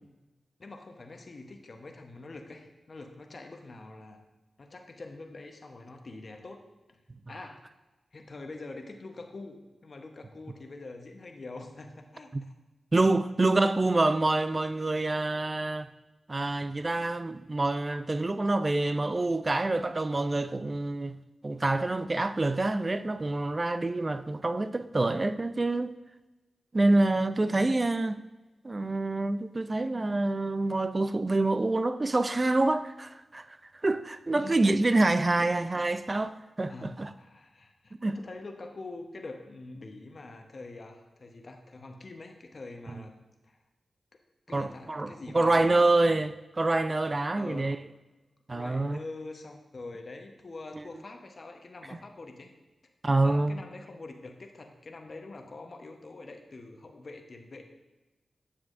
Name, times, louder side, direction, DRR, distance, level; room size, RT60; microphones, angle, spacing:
voice 1, 0.6-4.2 4.6-6.6 6.9-7.0 7.3-7.7 8.1-9.6 9.8-12.3 27.4-27.7 34.3-34.6 35.4-35.5 36.6-43.6 44.5-45.9 47.3-47.7 48.5-52.5 53.2-57.6, left 2 dB, 55° left, 0.9 m, -45 dB
voice 2, 12.9-15.9 16.3-21.2 21.4-26.0 26.7-28.2 28.6-33.5 33.8-37.1 38.0-38.2 42.9-43.0 44.5-47.8 48.5-49.0 50.7-50.8 53.0-53.6, right 2 dB, 40° right, 0.4 m, -27 dB
8.4 x 7.2 x 2.5 m
cardioid pair, 45°, 0 cm